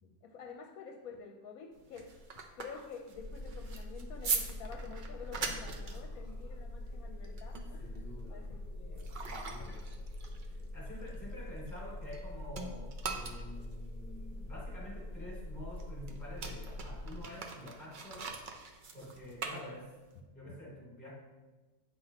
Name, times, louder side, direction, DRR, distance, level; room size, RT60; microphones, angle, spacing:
voice 1, 0.0-2.1 2.5-11.1 19.0-19.1 20.5-20.6, left 5 dB, 75° left, 3 dB, 1.0 m, -50 dB
sound 1, 1.7-12.2 12.5-20.2, right 5 dB, 55° right, 0.6 m, -42 dB
sound 2, 3.1-17.2, left 1 dB, 25° right, 1.1 m, -44 dB
voice 2, 5.9-6.3 7.8-8.4 9.2-9.9 10.4-18.4 18.9-21.1, left 1 dB, 10° left, -6 dB, 2.4 m, -48 dB
8.7 x 5.7 x 2.9 m, 1.2 s
omnidirectional pair, 1.6 m